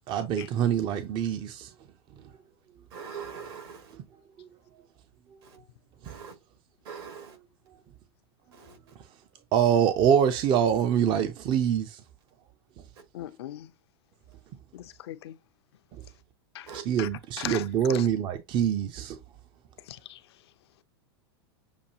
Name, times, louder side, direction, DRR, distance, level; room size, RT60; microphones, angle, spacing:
voice 1, 0.1-1.7 9.5-12.0 16.7-19.2, right 8 dB, 35° right, 0.6 m, -25 dB
voice 2, 2.9-3.8 6.1-6.3 6.9-7.3 8.6-8.7 16.7-16.8, right 6 dB, 70° right, 2.0 m, -41 dB
voice 3, 13.1-13.7 14.7-15.3 16.5-16.7 17.0-17.1 17.4-17.6 17.9-18.1 19.9-20.2, left 13 dB, 75° left, 0.6 m, -38 dB
7.0 x 2.3 x 2.8 m
hypercardioid pair, 120°, 14 cm